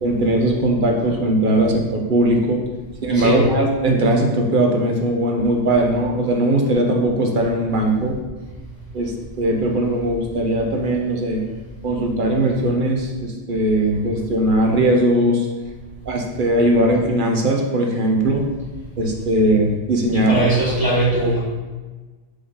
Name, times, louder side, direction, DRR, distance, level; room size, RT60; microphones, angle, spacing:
voice 1, 0.0-2.6 3.0-8.2 8.9-11.4 11.8-15.5 16.1-18.4 19.0-20.5, right 1 dB, 45° right, 1 dB, 0.9 m, -19 dB
voice 2, 3.1-3.5 20.1-21.4, right 2 dB, 15° right, -7 dB, 1.6 m, -20 dB
5.0 x 3.7 x 5.4 m, 1.3 s
omnidirectional pair, 1.3 m